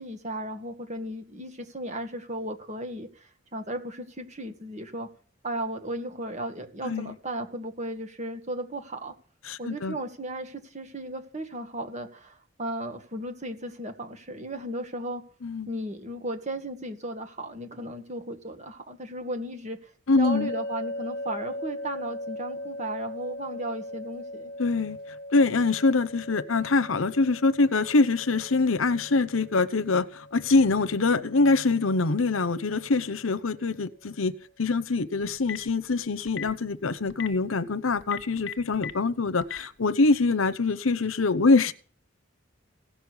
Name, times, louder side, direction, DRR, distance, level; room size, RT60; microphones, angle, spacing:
voice 1, 0.0-5.1 5.4-9.1 9.6-15.2 15.7-19.8 20.2-24.5, right 1 dB, 35° right, 6 dB, 2.0 m, -35 dB
voice 2, 6.8-7.1 9.4-10.0 15.4-15.7 20.1-20.5 24.6-25.0 25.3-41.7, left 3 dB, 85° left, 15 dB, 0.9 m, -24 dB
sound 1, 20.2-33.4, left 1 dB, 50° left, 1.3 m, -40 dB
Telephone, 35.2-35.7 36.3-36.5 37.1-37.3 38.0-38.9 39.4-39.6, left 8 dB, 65° left, 1.5 m, -34 dB
17.0 x 6.5 x 9.7 m, 0.43 s
head